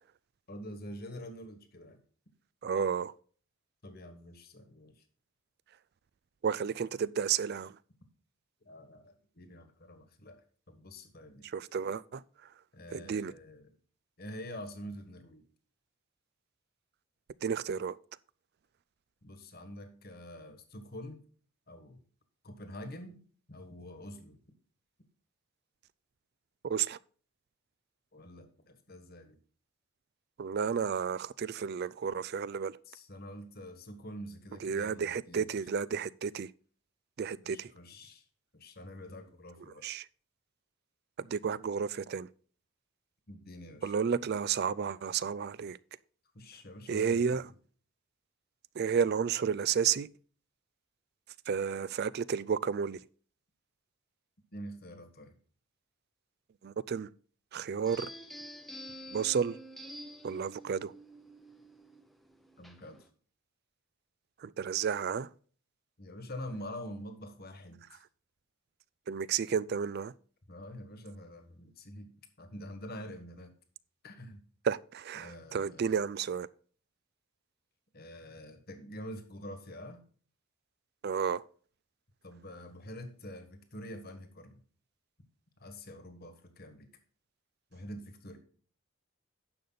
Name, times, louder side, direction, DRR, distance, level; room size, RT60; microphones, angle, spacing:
voice 1, 0.5-2.0 3.8-5.0 8.6-10.4 10.7-11.5 12.7-13.7 14.2-15.4 19.2-21.2 21.7-22.0 22.4-23.2 23.5-24.4 28.1-29.4 32.8-35.5 37.4-38.2 38.5-39.8 43.3-43.9 46.3-47.5 54.5-55.3 62.6-63.1 66.0-68.0 70.5-72.1 72.4-73.5 74.0-74.4 75.1-76.0 77.9-80.0 82.2-84.6 85.6-86.9 87.7-88.4, equal, 45° left, 1.5 m, -46 dB
voice 2, 2.6-3.1 6.4-7.8 11.4-12.2 12.9-13.3 17.4-18.0 26.6-27.0 30.4-32.8 34.6-36.5 37.2-37.7 39.8-40.0 41.2-42.3 43.8-45.8 46.9-47.4 48.8-50.1 51.5-53.0 56.6-57.1 57.5-58.1 59.1-59.6 60.2-60.9 64.4-65.3 69.1-70.1 74.6-76.5 81.0-81.4, right 7 dB, 45° right, 0.3 m, -32 dB
sound 1, 57.9-63.1, equal, ahead, 0.7 m, -48 dB
10.5 x 6.8 x 4.0 m
head